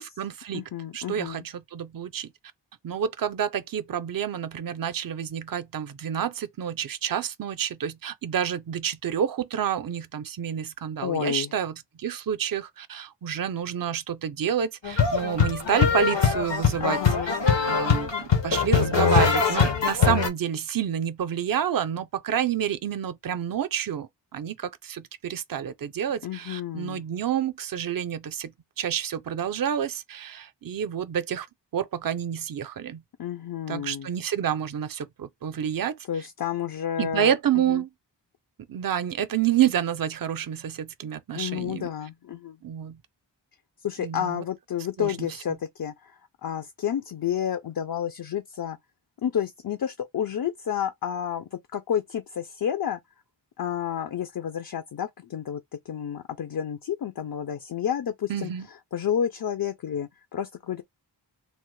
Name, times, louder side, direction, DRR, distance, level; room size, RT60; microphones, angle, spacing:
voice 1, 0.0-2.3 2.8-17.0 17.6-31.5 31.7-33.0 33.7-35.9 37.0-37.9 38.7-41.9 42.6-43.0 44.0-44.4 45.0-45.3 58.3-58.7, right 9 dB, 50° right, 0.5 m, -29 dB
voice 2, 0.5-1.4 11.0-11.5 16.8-17.3 26.2-27.0 33.2-34.1 36.1-37.8 41.3-42.6 43.8-48.8 49.2-53.0 53.6-55.6 55.9-58.5 58.9-60.8, left 9 dB, 55° left, 0.5 m, -30 dB
sound 1, 14.8-20.3, left 6 dB, 75° left, 0.8 m, -22 dB
3.2 x 2.0 x 3.1 m
wide cardioid pair, 55°, 44 cm